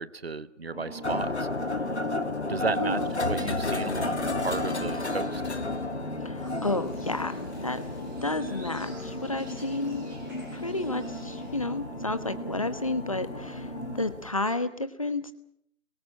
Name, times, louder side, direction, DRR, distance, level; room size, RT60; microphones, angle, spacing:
voice 1, 0.0-1.5 2.5-3.0 3.2-5.5, right 4 dB, 50° right, 17 dB, 1.1 m, -33 dB
sound 1, 0.7-14.1, left 1 dB, 5° left, 4.4 m, -38 dB
sound 2, 1.0-14.3, left 2 dB, 55° left, 1.6 m, -34 dB
voice 2, 2.8-3.2 6.2-7.8 8.2-10.1 10.5-15.3, left 2 dB, 25° left, 13 dB, 1.1 m, -31 dB
sound 3, 6.4-11.5, right 1 dB, 15° right, 7.7 m, -53 dB
29.5 x 23.0 x 6.4 m, 0.66 s
figure-of-eight pair, 165°, 39 cm